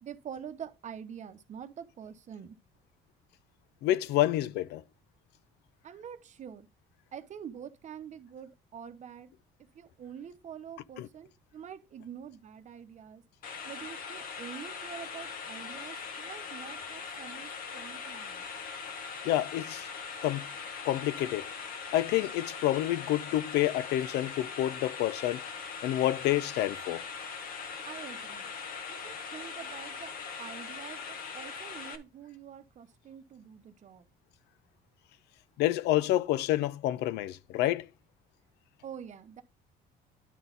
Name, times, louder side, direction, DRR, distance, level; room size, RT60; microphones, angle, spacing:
voice 1, 0.0-2.6 5.8-6.7 7.1-9.3 9.7-13.2 13.6-18.5 27.8-28.5 28.9-34.0 38.8-39.4, right 8 dB, 45° right, 0.9 m, -46 dB
voice 2, 3.8-4.8 11.0-11.1 19.2-19.9 20.2-20.5 20.8-21.5 21.9-25.4 25.8-27.0 35.6-37.9, left 14 dB, 85° left, 0.5 m, -28 dB
sound 1, 13.4-32.0, left 5 dB, 55° left, 1.3 m, -41 dB
11.0 x 4.0 x 3.9 m
cardioid pair, 110°, 17 cm